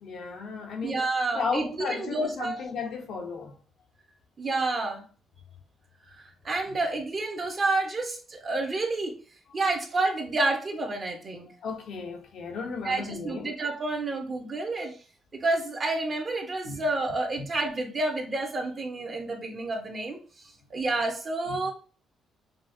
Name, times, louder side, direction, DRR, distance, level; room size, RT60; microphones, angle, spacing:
voice 1, 0.0-1.0 1.3-3.6 11.6-13.5 16.6-16.8, left 5 dB, 75° left, 0.9 m, -34 dB
voice 2, 0.8-2.6 4.4-5.0 6.1-9.2 9.5-11.5 12.8-15.0 15.4-20.2 20.7-21.7, right 2 dB, 40° right, 1.1 m, -29 dB
5.3 x 2.5 x 2.7 m
cardioid pair, 90°, 0 cm